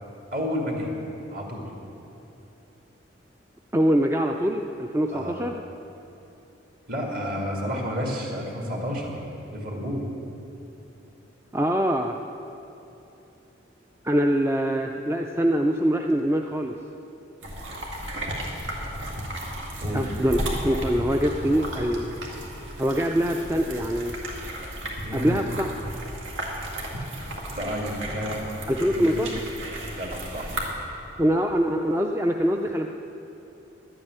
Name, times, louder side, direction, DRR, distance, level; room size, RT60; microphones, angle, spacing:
voice 1, 0.3-0.9 1.3-1.7 5.1-5.4 6.9-9.2 9.5-10.1 19.8-20.1 25.0-25.4 27.5-28.4 28.9-29.3 29.9-30.5, equal, 45° right, -1 dB, 2.5 m, -30 dB
voice 2, 3.7-5.6 11.5-12.2 14.0-16.7 19.9-20.4 20.6-22.1 22.8-24.1 25.1-25.7 28.7-29.3 31.2-32.9, equal, 15° right, 3 dB, 0.4 m, -24 dB
sound 1, 17.4-30.7, right 1 dB, 80° right, 2.3 m, -34 dB
11.5 x 8.9 x 9.5 m, 2.9 s
head